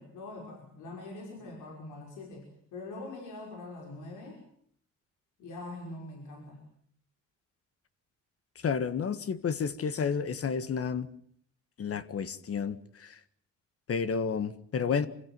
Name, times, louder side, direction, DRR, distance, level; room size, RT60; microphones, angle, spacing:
voice 1, 0.0-4.4 5.4-6.6, left 2 dB, 85° left, 5.6 m, -43 dB
voice 2, 8.6-11.1 11.8-13.2 13.9-15.1, left 6 dB, 50° left, 1.7 m, -31 dB
25.5 x 16.0 x 9.6 m
cardioid pair, 90°, 30 cm